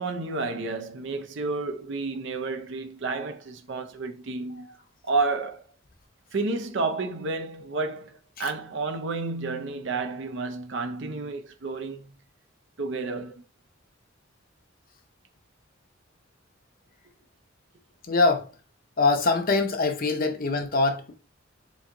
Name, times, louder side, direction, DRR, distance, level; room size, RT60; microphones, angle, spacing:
voice 1, 0.0-4.8 5.0-5.6 6.3-12.1 12.8-13.4, right 3 dB, 65° right, 0.6 m, -31 dB
voice 2, 18.1-18.5 19.0-21.1, left 3 dB, 45° left, 0.7 m, -23 dB
3.3 x 3.1 x 3.8 m
head